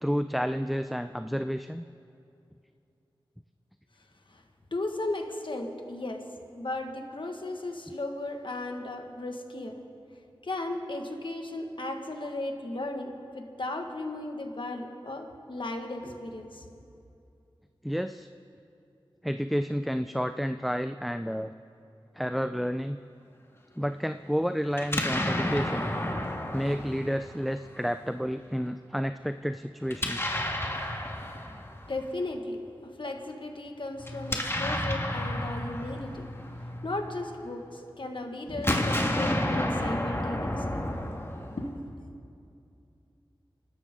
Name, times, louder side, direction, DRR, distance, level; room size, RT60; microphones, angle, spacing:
voice 1, 0.0-1.8 17.8-18.3 19.2-21.5 22.2-23.0 23.8-25.9 26.5-30.4, equal, ahead, 9 dB, 0.4 m, -30 dB
voice 2, 4.7-6.2 6.5-9.7 10.4-16.6 31.9-36.3 36.8-40.8 41.6-42.1, left 2 dB, 65° left, 3 dB, 1.7 m, -36 dB
Explosion, 24.7-27.8 29.9-32.1 34.0-37.4 38.5-41.9, left 1 dB, 25° left, 1.7 m, -31 dB
28.0 x 12.5 x 3.8 m, 2.6 s
wide cardioid pair, 45°, 9 cm